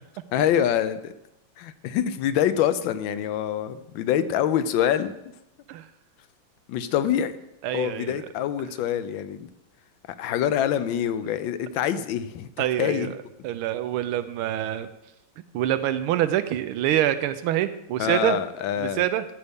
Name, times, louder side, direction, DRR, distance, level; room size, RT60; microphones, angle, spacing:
voice 1, 0.3-1.1 1.6-5.1 6.7-7.4 7.7-9.5 10.2-13.1 18.0-19.0, left 10 dB, 75° left, 13 dB, 1.3 m, -25 dB
voice 2, 7.6-8.2 12.6-13.2 13.4-14.9 15.5-18.4 18.8-19.3, right 12 dB, 90° right, 12 dB, 1.5 m, -25 dB
12.5 x 7.9 x 3.6 m, 0.88 s
omnidirectional pair, 2.3 m